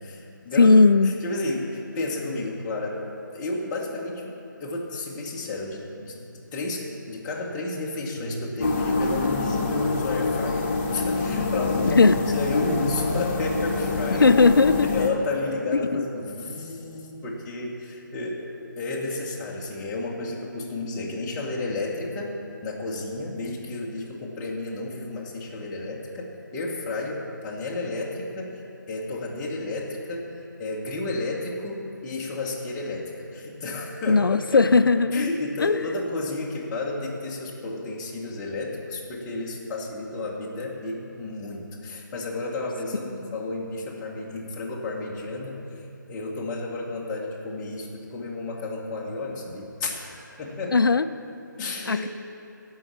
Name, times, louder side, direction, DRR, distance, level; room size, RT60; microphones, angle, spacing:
voice 1, 0.0-0.7 1.0-3.0 3.3-4.3 4.6-14.3 14.8-18.4 18.8-22.4 22.6-28.6 28.9-34.8 35.1-45.6 46.1-50.8 51.6-52.1, left 2 dB, 10° left, -4 dB, 1.0 m, -32 dB
voice 2, 0.6-1.1 11.9-12.4 14.2-14.9 15.9-16.0 34.1-35.3 35.6-35.8 43.2-43.4 50.7-51.1 51.9-52.1, left 4 dB, 90° left, 11 dB, 0.4 m, -18 dB
sound 1, 8.2-15.2, equal, 60° right, 2.2 m, -41 dB
sound 2, 8.6-15.1, left 3 dB, 35° left, 1.0 m, -26 dB
15.0 x 5.6 x 7.3 m, 2.9 s
figure-of-eight pair, 165°, 11 cm